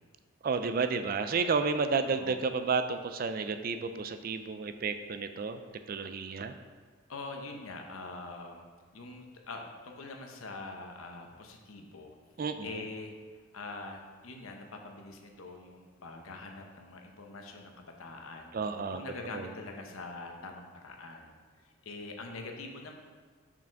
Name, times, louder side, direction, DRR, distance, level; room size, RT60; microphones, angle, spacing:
voice 1, 0.4-5.6 5.9-6.5 12.4-12.8 18.5-19.0 19.3-19.5, right 4 dB, 40° right, 9 dB, 0.3 m, -31 dB
voice 2, 2.0-2.4 7.1-8.6 8.9-12.2 12.6-18.5 18.9-21.3 21.6-22.9, left 3 dB, 75° left, 3 dB, 0.8 m, -44 dB
5.7 x 4.9 x 4.6 m, 1.5 s
head